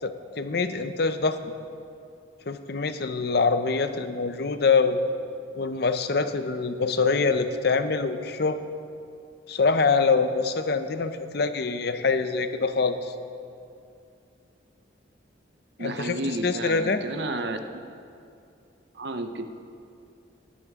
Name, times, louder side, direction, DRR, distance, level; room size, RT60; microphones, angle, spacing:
voice 1, 0.0-1.5 2.5-5.0 5.6-8.6 9.5-13.1 15.8-16.2 16.4-17.0, left 4 dB, 55° left, 10 dB, 0.6 m, -25 dB
voice 2, 15.8-17.9 18.9-19.5, right 2 dB, 60° right, 8 dB, 0.7 m, -32 dB
15.0 x 12.5 x 3.6 m, 2.5 s
head